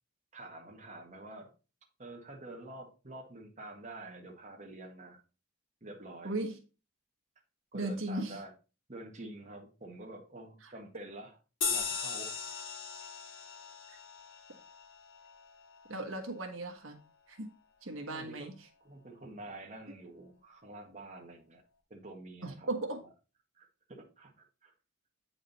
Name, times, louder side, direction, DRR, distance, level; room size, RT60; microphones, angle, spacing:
voice 1, 0.3-1.5 2.0-5.2 5.8-6.4 7.7-8.5 8.9-11.4 11.7-12.6 13.0-13.2 18.1-18.5 18.8-21.6 21.9-23.1 23.6-24.7, right 2 dB, 35° right, 1 dB, 1.7 m, -48 dB
voice 2, 6.2-6.6 7.7-8.4 10.6-10.7 13.9-14.0 15.9-17.0 17.3-17.5 17.8-18.5 22.4-23.0, right 2 dB, 85° right, 4 dB, 1.4 m, -37 dB
sound 1, 11.6-16.5, left 5 dB, 75° left, 2.9 m, -39 dB
9.0 x 5.0 x 4.1 m, 0.32 s
head